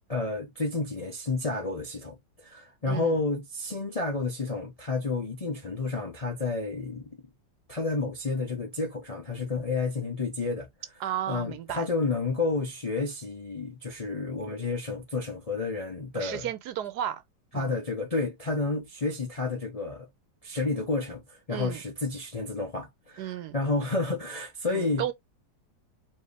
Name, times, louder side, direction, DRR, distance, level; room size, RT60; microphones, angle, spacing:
voice 1, 0.1-7.1 7.7-10.7 11.3-16.5 17.5-20.1 20.4-25.0, left 3 dB, 40° left, 0.5 m, -30 dB
voice 2, 11.0-11.8 16.1-17.2 17.5-17.7 21.5-21.8 23.2-23.6 24.7-25.1, right 11 dB, 70° right, 1.2 m, -33 dB
4.4 x 2.7 x 3.3 m
omnidirectional pair, 1.8 m